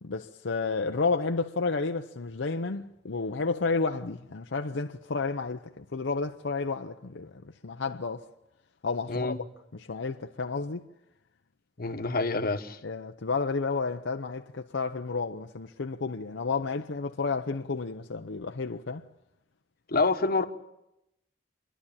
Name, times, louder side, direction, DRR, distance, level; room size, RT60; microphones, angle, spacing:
voice 1, 0.0-8.3 8.8-9.5 9.7-10.8 12.8-19.0, left 4 dB, 80° left, 0.7 m, -31 dB
voice 2, 11.8-12.8 19.9-20.4, left 3 dB, 55° left, 1.2 m, -27 dB
28.0 x 11.5 x 8.9 m
head